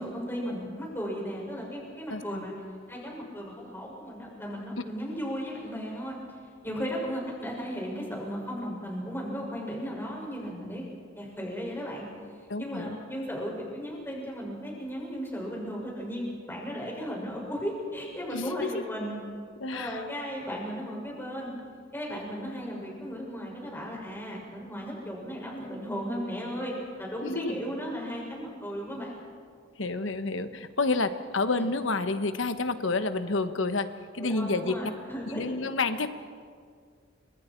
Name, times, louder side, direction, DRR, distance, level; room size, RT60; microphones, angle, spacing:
voice 1, 0.0-2.5 2.9-6.2 6.6-10.8 11.2-12.1 12.6-19.2 19.7-21.5 21.9-29.1 31.5-31.6 34.2-35.4, equal, 10° left, -2 dB, 6.4 m, -35 dB
voice 2, 2.1-2.5 12.5-13.0 18.3-18.8 19.6-20.0 27.2-27.6 29.8-33.9 34.1-34.8 35.3-36.1, left 3 dB, 65° left, 10 dB, 1.2 m, -29 dB
29.5 x 25.5 x 4.6 m, 2.1 s
head